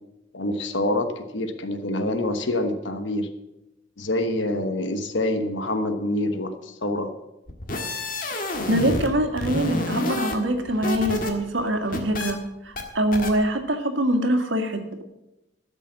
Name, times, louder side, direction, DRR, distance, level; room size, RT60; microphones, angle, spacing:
voice 1, 0.3-3.3 4.0-7.1, left 1 dB, 80° left, 8 dB, 1.1 m, -26 dB
sound 1, 7.5-9.1 9.4-11.3 11.6-12.3 12.8-12.9 13.1-13.3, left 2 dB, 45° left, 1.6 m, -29 dB
voice 2, 8.7-15.0, right 1 dB, 85° right, 6 dB, 1.7 m, -24 dB
13.0 x 6.9 x 7.4 m, 0.95 s
head